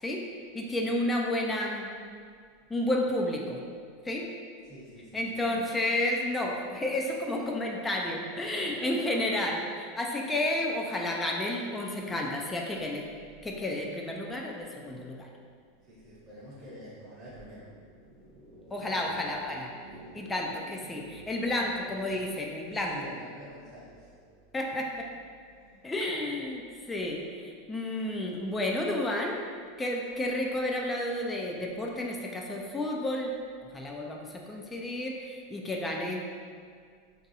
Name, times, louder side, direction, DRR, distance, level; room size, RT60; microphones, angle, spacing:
voice 1, 0.5-1.9 2.7-3.6 4.0-4.3 5.1-13.0 13.4-15.3 18.7-19.7 20.1-22.9 24.5-25.1 25.8-26.6 26.9-29.4 29.8-33.3 33.7-36.2, left 1 dB, 10° left, 0 dB, 0.3 m, -31 dB
voice 2, 4.6-5.4 8.6-9.1 14.7-14.9 15.8-24.4 25.5-25.9, equal, 20° right, -8 dB, 0.7 m, -49 dB
2.6 x 2.3 x 3.9 m, 2.1 s
supercardioid pair, 135°, 0 cm